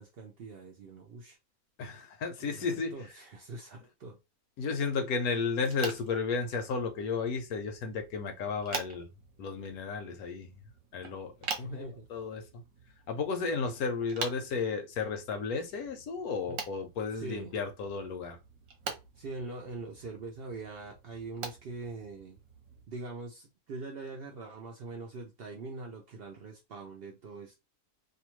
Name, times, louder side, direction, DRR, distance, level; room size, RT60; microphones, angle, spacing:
voice 1, 0.0-1.4 2.4-4.2 11.5-12.1 16.5-16.6 17.1-17.6 19.2-22.4 22.9-27.6, right 3 dB, 80° right, 0.5 m, -43 dB
voice 2, 1.8-2.9 4.6-9.1 9.4-10.5 10.9-11.3 11.6-12.6 13.1-18.4, left 5 dB, 75° left, 1.1 m, -33 dB
sound 1, 5.6-22.8, right 5 dB, 65° right, 1.0 m, -45 dB
2.8 x 2.2 x 3.0 m
omnidirectional pair, 1.7 m